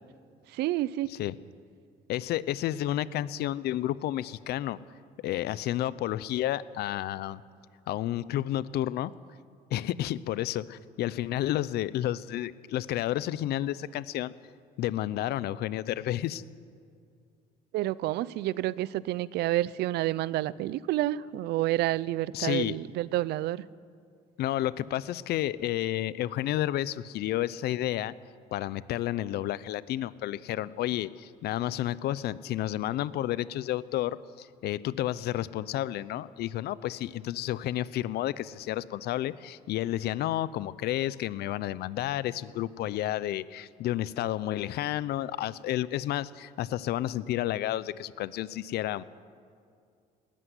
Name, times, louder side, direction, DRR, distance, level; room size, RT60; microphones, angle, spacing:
voice 1, 0.5-1.1 17.7-23.6, right 15 dB, 80° right, 20 dB, 0.6 m, -29 dB
voice 2, 2.1-4.8 5.2-7.4 7.9-9.1 9.7-14.3 14.8-16.4 22.3-22.8 24.4-28.1 28.5-49.0, left 13 dB, 70° left, 18 dB, 0.7 m, -31 dB
18.5 x 14.0 x 9.9 m, 2.3 s
cardioid pair, 110°, 17 cm